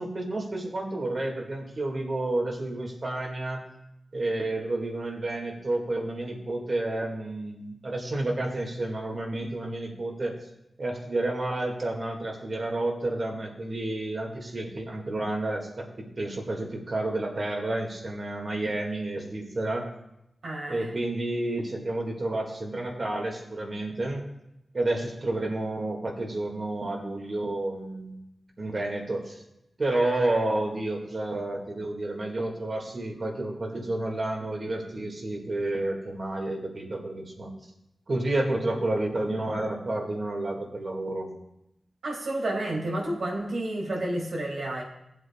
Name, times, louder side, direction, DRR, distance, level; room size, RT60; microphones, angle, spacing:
voice 1, 0.0-3.6 4.1-10.4 10.8-19.9 20.7-24.2 24.7-28.2 28.6-29.4 29.8-37.5 38.1-41.3, right 2 dB, 50° right, 1 dB, 2.0 m, -30 dB
voice 2, 20.4-20.9 42.0-44.8, right 1 dB, 85° right, -3 dB, 3.0 m, -30 dB
17.5 x 7.8 x 2.4 m, 0.85 s
wide cardioid pair, 90°, 0 cm